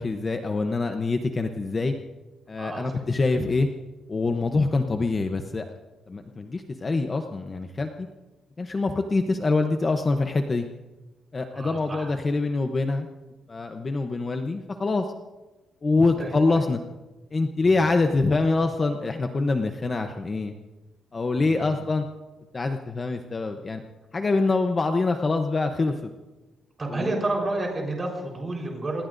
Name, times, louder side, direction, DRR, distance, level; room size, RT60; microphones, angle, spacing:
voice 1, 0.0-1.9 2.5-3.7 4.1-5.7 6.1-8.1 8.6-10.7 11.3-13.1 13.5-15.1 15.8-16.8 17.3-20.6 21.1-22.0 22.5-23.8 24.1-26.1 26.9-27.1, left 3 dB, 25° left, 5 dB, 0.8 m, -25 dB
voice 2, 2.6-3.1 11.5-12.2 16.0-16.4 17.6-17.9 21.3-21.8 26.8-29.1, right 2 dB, 20° right, 0 dB, 4.2 m, -31 dB
27.0 x 20.0 x 2.6 m, 1.2 s
cardioid pair, 165°, 0 cm